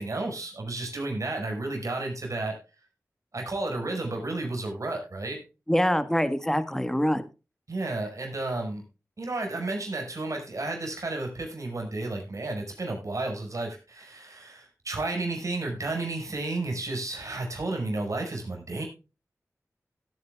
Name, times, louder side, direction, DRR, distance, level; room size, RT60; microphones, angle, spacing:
voice 1, 0.0-2.6 3.3-5.4 7.7-8.8 9.2-18.8, right 2 dB, 65° right, 2 dB, 5.5 m, -32 dB
voice 2, 5.7-7.2, equal, 10° left, 11 dB, 1.5 m, -24 dB
17.0 x 9.3 x 2.3 m, 0.31 s
cardioid pair, 45°, 6 cm